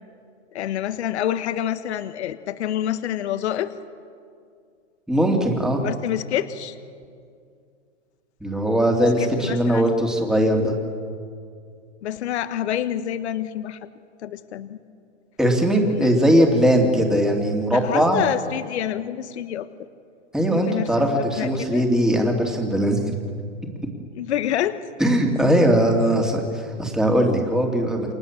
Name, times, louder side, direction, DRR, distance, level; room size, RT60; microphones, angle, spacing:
voice 1, 0.5-3.7 5.8-6.7 9.2-9.8 12.0-13.8 14.2-14.8 15.7-16.1 17.7-19.7 20.5-20.9 21.3-21.9 24.1-24.8, left 11 dB, 60° left, 11 dB, 1.4 m, -27 dB
voice 2, 5.1-5.8 8.4-10.7 15.4-18.2 20.3-23.0 25.0-28.1, equal, ahead, 1 dB, 2.6 m, -20 dB
29.5 x 26.0 x 7.3 m, 2.4 s
hypercardioid pair, 150°, 38 cm